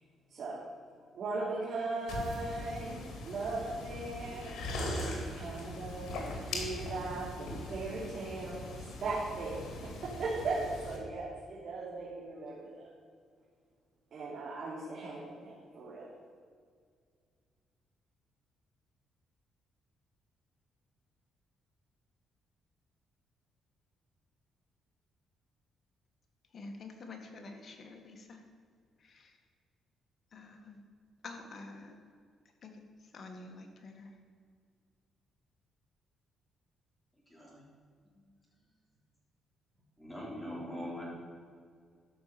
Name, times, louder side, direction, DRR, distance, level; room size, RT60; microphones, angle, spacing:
voice 1, 0.3-0.6 1.1-3.0 3.2-4.6 5.3-8.7 9.0-9.6 9.8-12.8 14.1-16.1, right 3 dB, 65° right, -6 dB, 3.0 m, -38 dB
sound 1, 2.1-11.0, left 1 dB, 75° left, 2.6 m, -40 dB
voice 2, 26.5-28.4 29.0-29.4 30.3-30.8 31.2-32.0 32.6-34.2, left 3 dB, 45° left, 4 dB, 1.9 m, -48 dB
voice 3, 37.3-37.6 38.0-38.2 40.0-41.0, equal, 5° left, -5 dB, 3.5 m, -42 dB
13.0 x 5.7 x 6.9 m, 2.1 s
cardioid pair, 90°, 0 cm